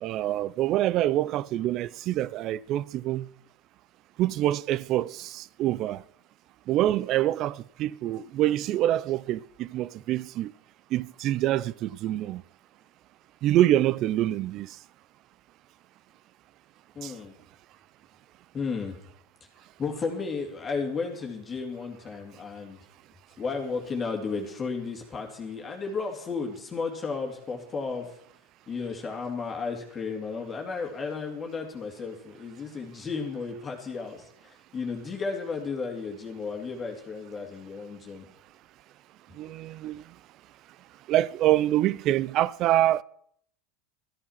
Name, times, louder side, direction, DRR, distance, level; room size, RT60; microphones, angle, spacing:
voice 1, 0.0-3.3 4.2-6.0 6.7-10.5 10.9-12.4 13.4-14.8 17.0-17.1 39.3-40.1 41.1-43.0, right 13 dB, 45° right, 0.5 m, -26 dB
voice 2, 17.0-17.3 18.5-19.0 19.8-22.8 23.4-28.1 28.7-38.3, left 4 dB, 25° left, 2.5 m, -33 dB
13.5 x 10.0 x 5.8 m
supercardioid pair, 110°, 0 cm